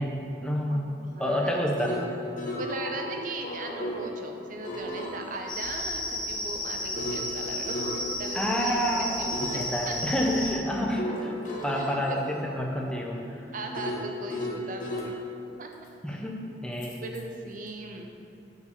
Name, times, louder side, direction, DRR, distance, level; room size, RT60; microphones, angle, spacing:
voice 1, 0.0-0.9 1.2-1.9 8.3-11.3 11.6-13.5 16.0-17.0, equal, 5° left, -1 dB, 0.7 m, -29 dB
voice 2, 0.7-1.6 2.6-7.7 8.2-9.9 11.7-12.2 13.5-15.2 15.6-15.7 17.0-18.1, right 2 dB, 50° right, 3 dB, 0.7 m, -38 dB
sound 1, 1.5-4.1 4.6-8.7 9.3-9.7 11.0-15.1 16.8-17.2, left 1 dB, 45° left, 1.1 m, -36 dB
sound 2, 5.5-10.5, left 1 dB, 25° left, 1.4 m, -33 dB
7.1 x 4.8 x 6.6 m, 2.8 s
head